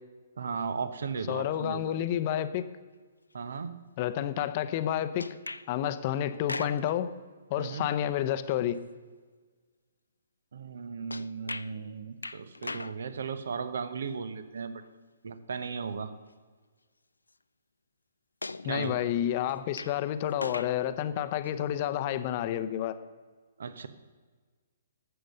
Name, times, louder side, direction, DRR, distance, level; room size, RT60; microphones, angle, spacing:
voice 1, 0.4-2.0 3.3-3.7 7.6-7.9 10.5-14.8 15.2-16.1 18.6-19.1 23.6-23.9, right 5 dB, 60° right, 12 dB, 1.0 m, -36 dB
voice 2, 1.3-2.6 4.0-5.4 5.7-7.1 7.5-8.8 18.6-23.0, left 11 dB, 35° left, 12 dB, 0.8 m, -30 dB
sound 1, 5.2-5.7 6.3-7.0 11.1-11.7 12.2-13.0 14.8-14.9 16.1-16.2 18.4-19.0 19.5-20.0 20.3-20.8 21.4-21.5, left 3 dB, 80° left, 0.4 m, -38 dB
12.5 x 7.9 x 6.6 m, 1.4 s
figure-of-eight pair, 125°, 0 cm